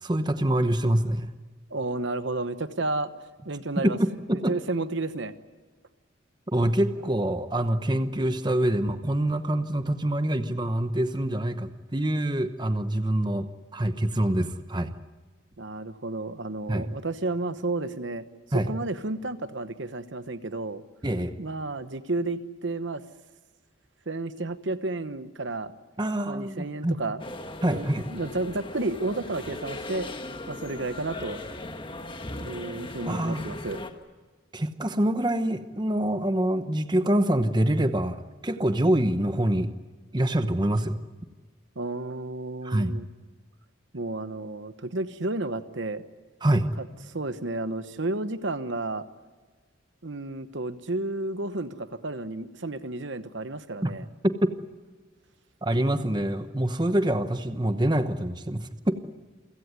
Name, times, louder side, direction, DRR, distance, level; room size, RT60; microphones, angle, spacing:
voice 1, 0.0-1.3 3.8-4.5 6.5-13.5 13.7-14.9 16.7-16.9 18.5-18.7 21.0-21.3 26.0-27.0 27.6-28.1 33.1-33.4 34.5-39.7 40.1-41.0 42.6-42.9 46.4-46.7 53.8-53.9 54.2-54.5 55.6-59.1, right 1 dB, 20° right, 9 dB, 1.0 m, -25 dB
voice 2, 1.7-3.1 3.4-4.0 4.3-5.3 15.6-18.2 18.5-20.8 21.4-23.0 24.1-25.7 26.3-27.2 27.6-30.1 30.5-31.4 32.3-33.8 41.8-43.1 43.9-46.0 46.8-46.9 47.1-49.0 50.0-54.1, right 2 dB, 65° right, 12 dB, 1.1 m, -32 dB
sound 1, 27.2-33.9, left 2 dB, 25° left, 1.6 m, -38 dB
28.5 x 16.5 x 9.6 m, 1.4 s
head